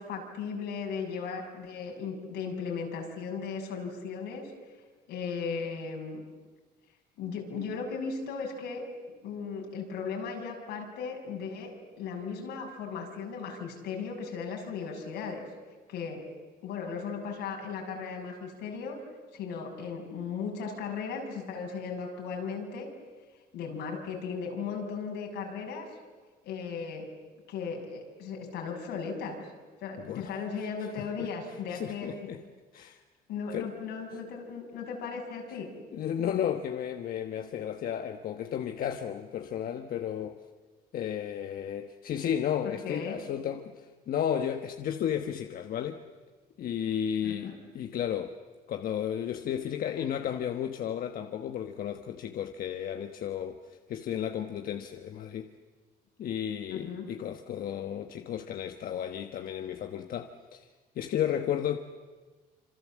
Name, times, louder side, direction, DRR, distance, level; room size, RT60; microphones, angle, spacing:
voice 1, 0.0-4.5 5.1-6.2 7.2-8.8 9.2-11.7 12.0-15.5 15.9-16.2 16.6-19.0 19.3-22.9 23.5-25.9 26.4-27.1 27.5-29.4 29.8-32.3 33.3-35.7 42.6-43.2 47.2-47.6 56.7-57.1, left 5 dB, 85° left, 1 dB, 6.4 m, -36 dB
voice 2, 31.7-32.4 32.7-33.0 33.5-33.7 35.9-40.3 40.9-46.0 46.6-48.3 48.7-55.5 56.2-60.7 60.9-61.8, left 9 dB, 60° left, 7 dB, 1.3 m, -33 dB
26.5 x 26.5 x 7.6 m, 1.4 s
cardioid pair, 110°, 17 cm